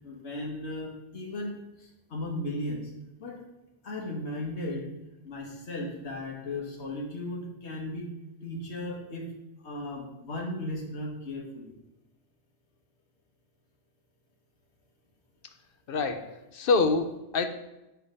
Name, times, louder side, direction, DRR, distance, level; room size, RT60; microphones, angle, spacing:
voice 1, 0.0-2.8 3.2-3.4 3.8-4.9 5.2-8.1 8.4-9.3 9.6-11.7, left 1 dB, 85° left, 0 dB, 1.6 m, -36 dB
voice 2, 15.9-17.5, left 4 dB, 60° left, 8 dB, 0.8 m, -26 dB
8.1 x 3.4 x 5.4 m, 0.98 s
omnidirectional pair, 1.1 m